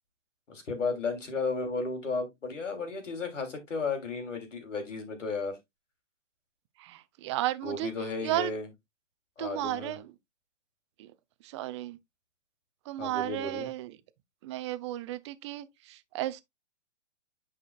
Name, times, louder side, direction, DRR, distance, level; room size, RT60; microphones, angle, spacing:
voice 1, 0.5-5.6 7.6-8.7 9.4-10.0 13.0-13.7, left 4 dB, 75° left, 3.3 m, -34 dB
voice 2, 6.8-8.5 9.4-10.1 11.0-11.1 11.4-12.0 12.9-14.0 14.4-16.4, right 14 dB, 25° right, 0.5 m, -34 dB
10.0 x 5.0 x 2.4 m
figure-of-eight pair, 125°, 37 cm